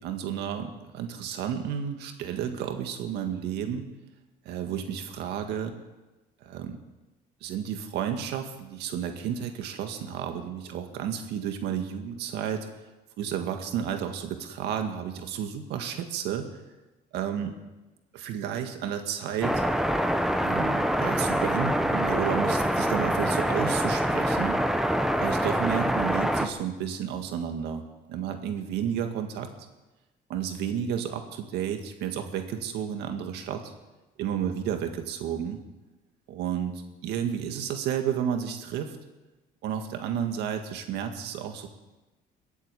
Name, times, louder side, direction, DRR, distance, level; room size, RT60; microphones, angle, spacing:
voice 1, 0.0-3.9 4.5-5.7 6.4-6.8 7.4-12.7 13.2-16.5 17.1-17.5 18.1-19.6 20.4-24.6 25.2-29.5 30.3-33.7 34.2-35.6 36.3-39.0 39.6-41.7, right 8 dB, 85° right, 6 dB, 1.9 m, -32 dB
Searching radio stations, 19.4-26.5, equal, ahead, 1.1 m, -25 dB
22.0 x 8.6 x 7.0 m, 1.1 s
cardioid pair, 110°, 17 cm